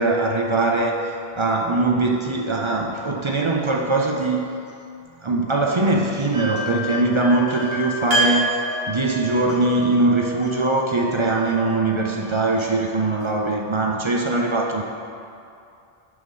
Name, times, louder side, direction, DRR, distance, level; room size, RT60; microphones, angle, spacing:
voice 1, 0.0-4.5 5.2-8.6 8.9-14.8, right 2 dB, 40° right, 0 dB, 0.4 m, -21 dB
sound 1, 6.3-13.2, right 1 dB, 75° right, 1.9 m, -29 dB
6.3 x 5.0 x 5.3 m, 2.5 s
omnidirectional pair, 1.0 m